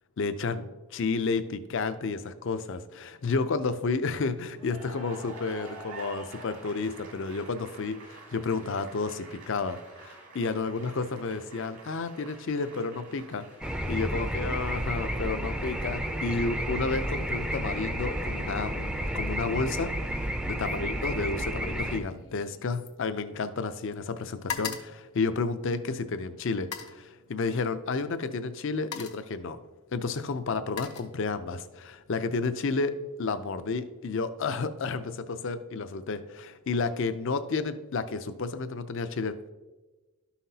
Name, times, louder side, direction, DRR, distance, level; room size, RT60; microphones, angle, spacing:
voice 1, 0.2-13.4 13.9-29.6 29.9-39.5, left 4 dB, 55° left, 11 dB, 0.5 m, -31 dB
Cheering / Applause, 4.5-19.5, right 3 dB, 75° right, 1.8 m, -49 dB
sound 1, 13.6-22.0, equal, 5° right, 0.4 m, -31 dB
sound 2, 20.0-20.4 20.7-23.8 24.1-26.0 26.6-27.0 28.1-28.3 28.6-29.4 30.2-31.6 32.0-32.4, left 7 dB, 85° left, 0.8 m, -41 dB
12.5 x 5.7 x 2.8 m, 1.2 s
head